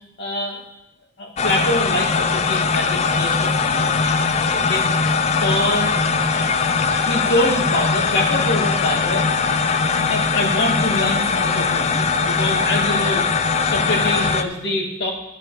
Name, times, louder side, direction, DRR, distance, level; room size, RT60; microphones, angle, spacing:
voice 1, 0.2-0.6 1.2-4.1 4.5-4.9 5.3-5.9 6.3-6.5 7.0-9.3 9.7-9.8 10.1-13.3 13.6-15.1, left 1 dB, 55° left, 0 dB, 2.1 m, -25 dB
sound 1, 1.4-14.4, left 5 dB, 30° left, 0.4 m, -20 dB
11.5 x 7.7 x 4.9 m, 0.87 s
head